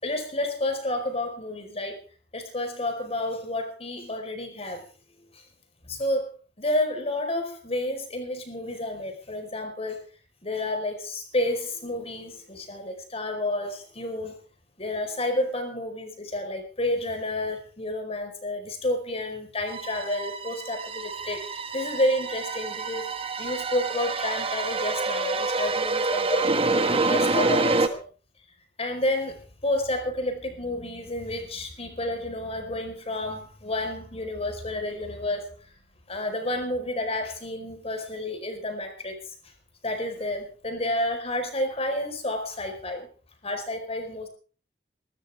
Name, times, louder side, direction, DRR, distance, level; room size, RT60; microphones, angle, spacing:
voice 1, 0.0-2.0 2.3-4.9 5.3-5.4 5.8-10.1 10.4-14.4 14.8-23.1 23.4-28.0 28.8-35.5 36.1-39.3 39.8-43.1 43.4-44.3, left 1 dB, 35° left, 5 dB, 4.6 m, -30 dB
sound 1, 19.7-27.9, right 3 dB, 35° right, 1.5 m, -27 dB
23.5 x 13.5 x 3.6 m, 0.38 s
head